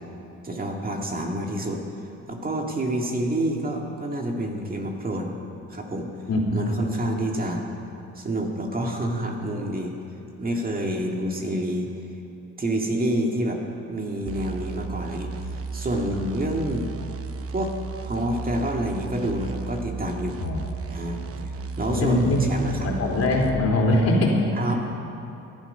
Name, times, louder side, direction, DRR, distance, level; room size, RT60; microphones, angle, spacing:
voice 1, 0.4-1.8 2.3-5.3 5.7-6.1 6.5-7.6 8.2-9.9 10.4-11.9 12.6-13.6 13.9-16.9 17.5-17.7 18.0-20.4 20.9-21.2 21.8-22.9 24.6-24.7, right 1 dB, 30° right, 1 dB, 2.0 m, -28 dB
sound 1, 14.3-23.7, right 5 dB, 50° right, 0.9 m, -34 dB
voice 2, 21.9-24.4, left 1 dB, 55° left, -1 dB, 3.4 m, -22 dB
18.5 x 11.5 x 5.6 m, 2.8 s
cardioid pair, 90°, 30 cm